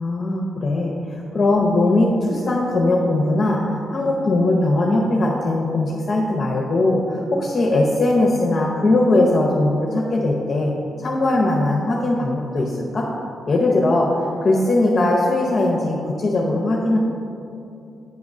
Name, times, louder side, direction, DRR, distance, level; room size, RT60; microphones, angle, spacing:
voice 1, 0.0-3.6 3.9-10.7 11.0-13.1 13.5-17.0, left 2 dB, 35° left, -1 dB, 0.6 m, -20 dB
8.6 x 3.6 x 5.3 m, 2.7 s
cardioid pair, 140°, 0 cm